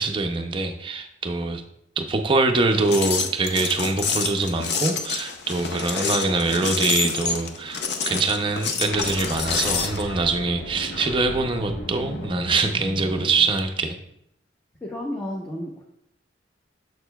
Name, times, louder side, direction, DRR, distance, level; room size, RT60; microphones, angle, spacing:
voice 1, 0.0-1.6 2.0-14.0, right 3 dB, 25° right, 5 dB, 0.5 m, -24 dB
sound 1, 2.7-10.0, left 5 dB, 60° left, 0.5 m, -28 dB
sound 2, 8.8-14.0, equal, 75° left, 1.2 m, -35 dB
voice 2, 14.8-15.8, left 1 dB, 10° left, -2 dB, 0.7 m, -32 dB
6.6 x 6.5 x 2.3 m, 0.76 s
head